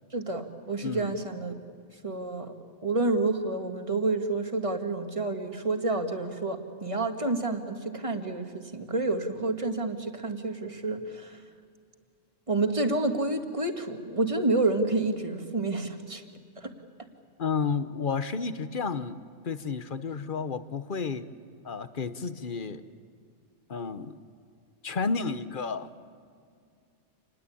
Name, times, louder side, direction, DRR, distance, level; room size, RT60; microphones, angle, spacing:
voice 1, 0.1-1.6 2.0-2.6 2.8-11.4 12.5-16.2 16.6-16.7, right 2 dB, 30° right, 5 dB, 1.9 m, -29 dB
voice 2, 0.8-1.1 17.4-19.2 19.4-21.3 21.6-22.8 23.7-24.2 24.8-25.9, left 5 dB, 50° left, 12 dB, 1.1 m, -31 dB
28.0 x 20.5 x 8.6 m, 2.3 s
omnidirectional pair, 1.2 m